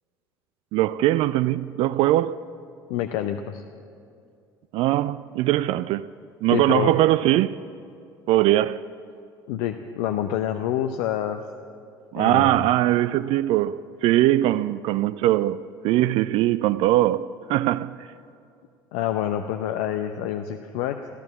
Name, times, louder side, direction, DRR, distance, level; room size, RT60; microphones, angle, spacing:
voice 1, 0.7-2.4 4.7-6.1 6.4-7.6 8.3-8.8 12.1-18.1, right 14 dB, 50° right, 0.3 m, -21 dB
voice 2, 2.9-3.6 6.5-6.9 9.5-11.4 12.2-12.5 18.9-21.1, left 11 dB, 55° left, 0.6 m, -27 dB
14.5 x 13.5 x 7.3 m
figure-of-eight pair, 65°, 12 cm